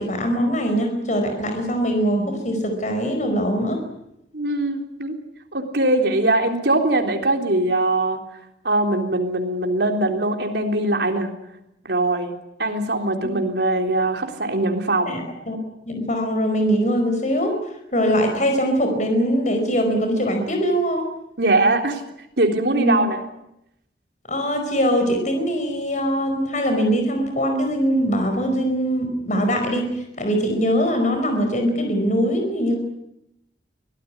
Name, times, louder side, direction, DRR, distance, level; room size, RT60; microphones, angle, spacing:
voice 1, 0.0-3.8 13.2-13.3 15.0-15.6 15.9-17.6 17.9-21.1 22.7-23.0 24.3-32.8, equal, 45° left, 5 dB, 4.9 m, -22 dB
voice 2, 4.3-5.2 5.5-8.2 8.6-11.3 11.8-12.3 12.6-15.2 21.4-22.0 22.4-23.2, right 2 dB, 70° right, 4 dB, 3.7 m, -21 dB
24.0 x 17.5 x 9.8 m, 0.82 s
head